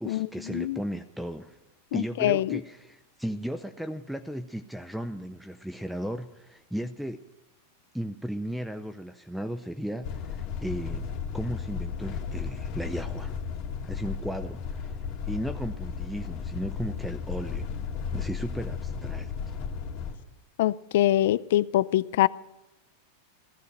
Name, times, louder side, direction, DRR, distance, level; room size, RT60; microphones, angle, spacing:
voice 1, 0.0-1.6 1.9-7.2 7.9-13.3 13.8-15.0 15.3-17.7 18.1-19.3, equal, ahead, 9 dB, 0.6 m, -35 dB
voice 2, 1.9-2.6 20.6-22.3, left 14 dB, 70° left, 19 dB, 0.5 m, -24 dB
sound 1, 10.0-20.2, left 6 dB, 50° left, 2.2 m, -34 dB
15.5 x 14.0 x 6.5 m, 0.98 s
supercardioid pair, 130°, 0 cm